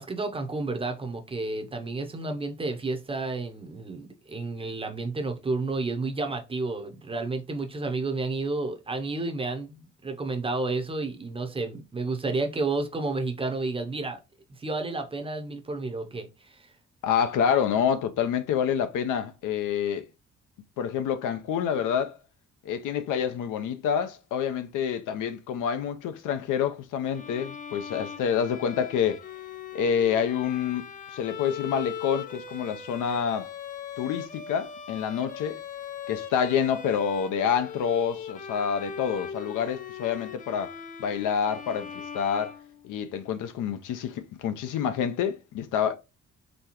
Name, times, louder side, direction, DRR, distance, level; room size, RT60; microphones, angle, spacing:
voice 1, 0.0-14.2 14.5-16.7, right 3 dB, 20° right, 0.6 m, -31 dB
voice 2, 17.0-20.1 20.8-22.2 22.6-29.2 29.7-30.8 31.1-33.5 34.0-35.6 36.1-40.7 41.0-42.6 42.8-46.0, left 8 dB, 85° left, 0.6 m, -27 dB
Bowed string instrument, 27.1-43.1, left 7 dB, 30° left, 0.4 m, -40 dB
4.2 x 3.2 x 2.9 m
cardioid pair, 150°, 30 cm